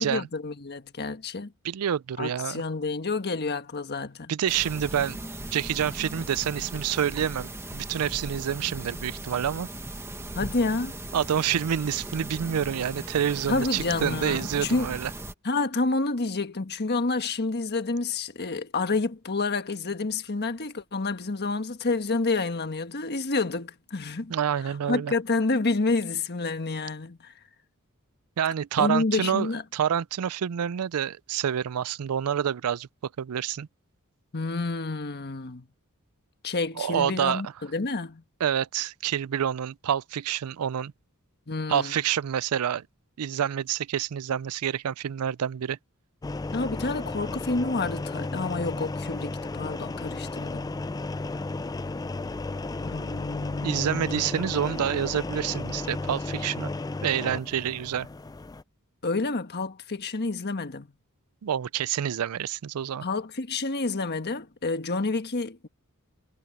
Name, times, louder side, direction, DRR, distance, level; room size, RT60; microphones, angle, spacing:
voice 1, 0.0-1.5 2.2-4.3 10.3-11.0 13.5-14.9 15.4-24.3 24.9-27.3 28.8-29.6 34.3-35.6 36.4-38.2 41.5-41.9 46.5-50.7 52.8-54.3 54.6-54.8 59.0-60.9 63.0-65.7, left 3 dB, 50° left, 1.4 m, -29 dB
voice 2, 1.6-2.6 4.3-5.2 5.5-9.7 11.1-15.1 24.3-25.1 28.4-32.9 33.2-33.7 36.8-37.4 38.4-40.9 41.7-42.9 43.2-45.8 53.6-56.7 57.0-58.1 61.4-63.0, right 9 dB, 80° right, 0.4 m, -28 dB
sound 1, 4.5-15.3, right 1 dB, 10° right, 1.4 m, -38 dB
sound 2, 46.2-58.6, left 2 dB, 15° left, 0.4 m, -34 dB
head